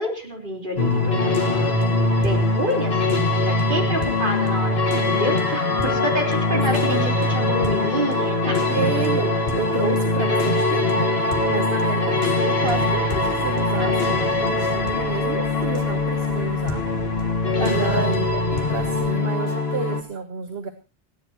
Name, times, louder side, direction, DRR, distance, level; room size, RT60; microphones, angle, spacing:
voice 1, 0.0-1.8 2.2-8.6 17.6-18.1, equal, 55° right, 0 dB, 4.3 m, -28 dB
sound 1, 0.8-20.0, left 2 dB, 75° left, 2.0 m, -22 dB
sound 2, 5.2-9.8, left 4 dB, 10° right, 2.2 m, -35 dB
voice 2, 8.7-16.8 17.6-20.7, right 5 dB, 70° right, 7 dB, 1.4 m, -30 dB
Gull seagull, 12.6-19.2, right 2 dB, 90° right, 5.3 m, -40 dB
29.5 x 10.0 x 3.0 m, 0.31 s
omnidirectional pair, 1.0 m